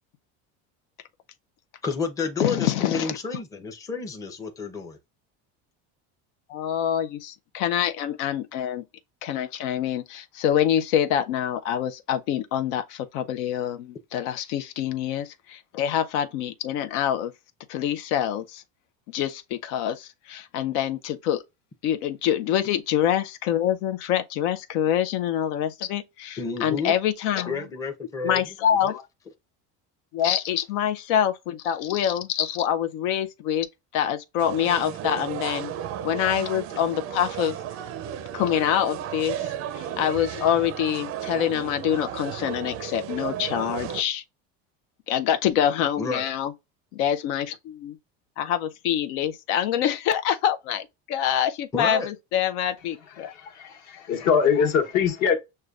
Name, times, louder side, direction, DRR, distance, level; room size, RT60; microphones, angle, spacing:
voice 1, 1.8-5.0 26.4-26.9 27.5-28.4 46.0-46.3 51.7-52.1, left 4 dB, 10° left, 0.5 m, -30 dB
voice 2, 2.4-3.2 6.5-8.8 9.2-17.3 17.7-18.6 19.1-21.4 21.8-27.6 28.2-29.1 30.1-33.7 33.9-35.7 36.0-37.6 38.3-44.2 45.1-46.5 46.9-48.0 48.4-53.3 54.6-54.7, left 10 dB, 85° left, 0.6 m, -26 dB
sound 1, 34.4-44.0, right 10 dB, 40° right, 0.4 m, -34 dB
voice 3, 53.6-55.4, left 6 dB, 55° left, 1.1 m, -22 dB
6.5 x 2.2 x 2.4 m
cardioid pair, 145°, 34 cm